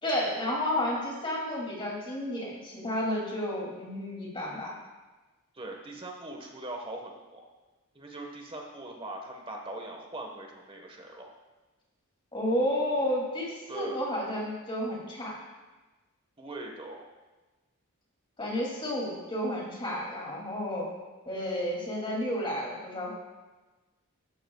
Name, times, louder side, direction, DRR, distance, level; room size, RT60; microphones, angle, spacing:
voice 1, 0.0-4.7 12.3-15.4 18.4-20.9 21.3-23.1, left 1 dB, 25° left, -3 dB, 2.8 m, -31 dB
voice 2, 5.5-7.4 7.9-11.3 13.7-14.0 16.4-17.1, right 1 dB, 25° right, 1 dB, 1.4 m, -41 dB
14.0 x 12.5 x 2.4 m, 1.2 s
head